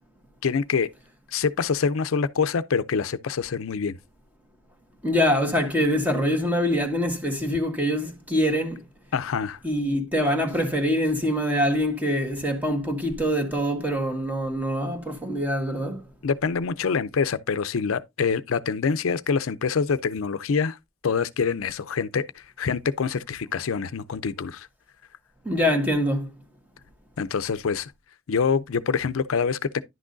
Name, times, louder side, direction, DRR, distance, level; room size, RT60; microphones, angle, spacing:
voice 1, 0.4-0.9 1.3-4.0 9.1-9.6 16.2-20.8 21.0-24.7 27.2-27.9 28.3-29.8, left 5 dB, 85° left, 0.5 m, -25 dB
voice 2, 5.0-8.8 9.6-16.0 25.4-26.3, equal, 10° right, 1.5 m, -24 dB
10.5 x 6.0 x 2.5 m
head